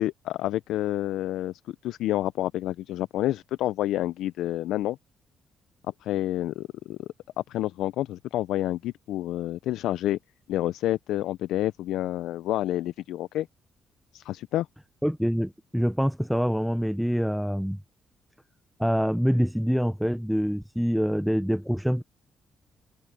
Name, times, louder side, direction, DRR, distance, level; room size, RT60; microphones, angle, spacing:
voice 1, 0.0-5.0 6.0-7.1 7.5-10.2 10.5-13.5 14.1-14.7, left 14 dB, 85° left, 0.4 m, -29 dB
voice 2, 15.0-17.8 18.8-22.0, equal, ahead, 0.5 m, -25 dB
open air
cardioid pair, 90°, 0 cm